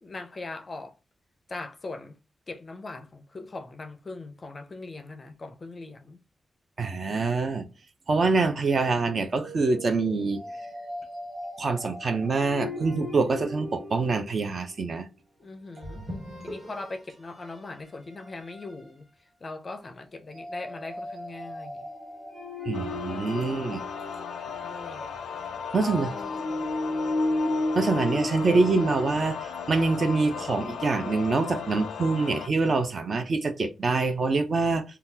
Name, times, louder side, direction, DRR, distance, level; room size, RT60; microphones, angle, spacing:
voice 1, 0.0-0.9 1.5-2.2 2.5-6.2 15.4-16.0 16.4-19.1 19.4-21.9 24.6-25.1 25.8-26.5, left 3 dB, 30° left, 0.4 m, -40 dB
voice 2, 6.8-7.6 8.1-10.4 11.6-15.1 22.7-23.8 25.7-26.1 27.7-34.8, right 3 dB, 40° right, 0.5 m, -25 dB
sound 1, 9.3-14.6 15.8-17.0 17.5-17.6 18.2-18.7 20.3-24.8 26.0-29.1, left 1 dB, 25° right, 1.2 m, -35 dB
sound 2, 22.7-32.5, left 6 dB, 90° left, 0.4 m, -36 dB
3.7 x 2.3 x 2.7 m
wide cardioid pair, 160°, 0 cm